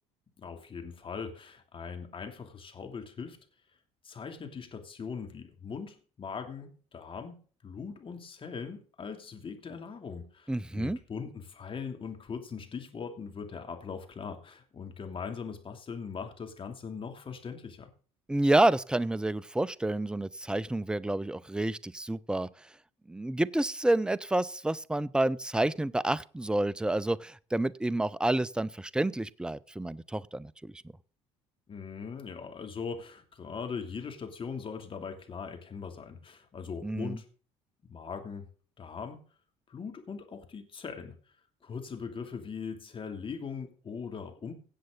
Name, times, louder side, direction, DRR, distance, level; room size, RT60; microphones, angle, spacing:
voice 1, 0.4-3.4 4.0-17.9 31.7-37.3 37.8-38.5 38.8-39.2 39.7-41.1 41.6-44.5, left 5 dB, 35° left, 5 dB, 3.0 m, -40 dB
voice 2, 10.5-11.0 18.3-22.5 23.1-30.7 36.8-37.2, right 1 dB, 5° right, 19 dB, 0.6 m, -29 dB
17.0 x 7.8 x 4.0 m, 0.41 s
hypercardioid pair, 70°, 15 cm